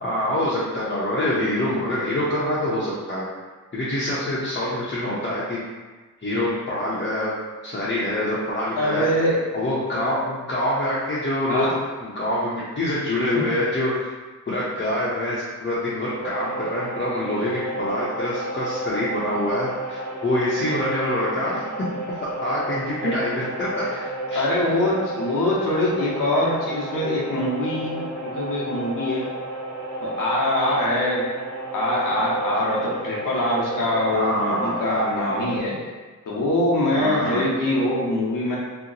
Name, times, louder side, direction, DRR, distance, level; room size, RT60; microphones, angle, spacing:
voice 1, 0.0-3.3 3.7-5.6 6.2-7.3 7.6-9.1 9.5-11.8 12.0-14.1 14.5-23.8 24.3-24.4 34.1-34.8 37.0-37.4, left 1 dB, 35° left, -9 dB, 0.7 m, -25 dB
voice 2, 8.8-9.5 11.5-11.7 13.2-13.5 23.0-23.2 24.3-29.3 30.0-31.3 31.7-35.8 36.3-38.6, left 1 dB, 80° left, -4 dB, 0.8 m, -23 dB
sound 1, 16.2-35.6, right 1 dB, 75° right, 1.5 m, -32 dB
2.8 x 2.1 x 3.9 m, 1.3 s
cardioid pair, 85°, 32 cm